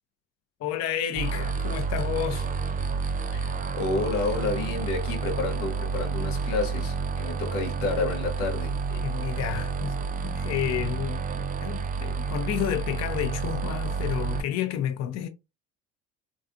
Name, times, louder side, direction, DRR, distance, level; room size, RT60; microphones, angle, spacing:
voice 1, 0.6-2.5 8.9-10.0 10.2-15.3, left 10 dB, 45° left, 0.5 m, -31 dB
sound 1, 1.1-14.4, right 5 dB, 25° right, 0.4 m, -30 dB
voice 2, 3.3-8.8, left 3 dB, 85° left, 0.9 m, -30 dB
2.4 x 2.4 x 2.5 m
hypercardioid pair, 65°, 36 cm